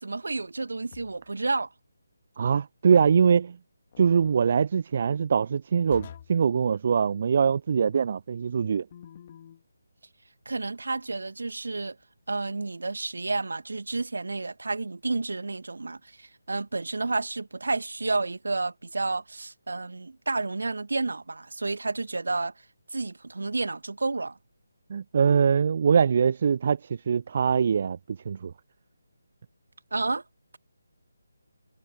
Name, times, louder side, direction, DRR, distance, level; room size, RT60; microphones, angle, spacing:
voice 1, 0.0-1.7 10.5-12.0 12.3-22.5 22.9-24.4 29.9-30.2, right 3 dB, 60° right, 2.0 m, -30 dB
sound 1, 0.9-1.4 3.9-4.4 5.9-6.4 8.9-9.6, left 9 dB, 30° left, 2.7 m, -47 dB
voice 2, 2.4-3.6 4.0-8.8 24.9-26.8 27.1-28.0 28.3-28.5, right 6 dB, 40° right, 0.6 m, -23 dB
figure-of-eight pair, 150°, 0 cm